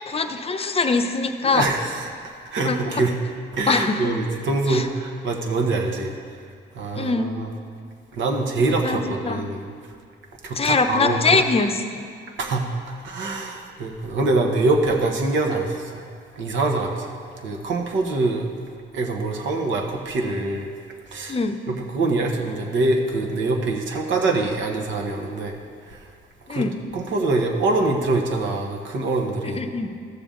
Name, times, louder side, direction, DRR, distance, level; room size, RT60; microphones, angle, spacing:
voice 1, 0.1-1.7 2.7-3.1 3.7-4.2 4.7-4.9 6.9-7.3 8.8-9.5 10.6-12.0 21.3-21.6 26.5-26.8 29.5-29.9, left 4 dB, 30° left, 7 dB, 0.6 m, -23 dB
voice 2, 1.4-2.1 2.5-3.1 3.5-6.1 6.7-7.5 8.1-9.7 10.4-11.2 12.4-12.7 13.0-16.1 16.3-17.1 17.4-18.4 18.9-20.7 21.1-21.4 21.7-25.5 25.9-26.0 26.5-26.7 26.9-29.7, right 2 dB, 70° right, 2 dB, 1.2 m, -24 dB
13.0 x 6.9 x 3.8 m, 2.2 s
cardioid pair, 90°, 20 cm